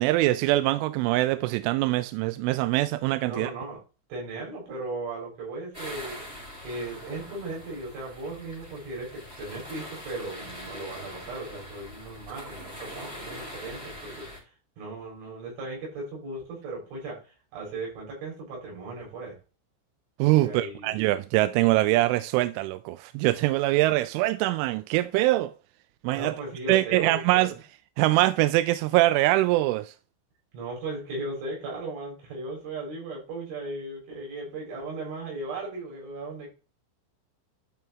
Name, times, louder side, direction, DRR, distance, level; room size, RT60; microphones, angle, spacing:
voice 1, 0.0-3.5 20.2-25.5 26.0-26.3 26.7-27.5 28.0-29.9, right 17 dB, 85° right, 2.9 m, -23 dB
voice 2, 3.3-3.8 4.1-6.2 6.6-14.3 14.8-19.4 20.4-20.9 26.1-27.5 30.5-36.5, right 2 dB, 65° right, 6.6 m, -37 dB
sound 1, 5.7-14.4, equal, 15° right, 2.8 m, -42 dB
12.0 x 4.4 x 3.6 m
omnidirectional pair, 5.8 m